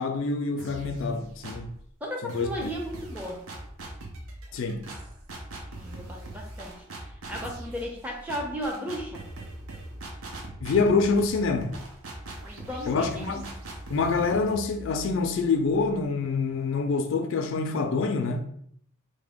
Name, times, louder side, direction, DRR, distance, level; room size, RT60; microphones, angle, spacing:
voice 1, 0.0-1.7 2.2-2.5 4.5-4.8 10.6-11.8 12.9-13.5 13.9-18.4, left 4 dB, 65° left, 0.3 m, -26 dB
sound 1, 0.6-1.8 2.3-16.0, right 1 dB, 75° right, 0.6 m, -41 dB
voice 2, 2.0-3.4 5.7-9.2 12.4-13.3, equal, 5° right, 0.5 m, -35 dB
3.4 x 2.2 x 3.5 m
head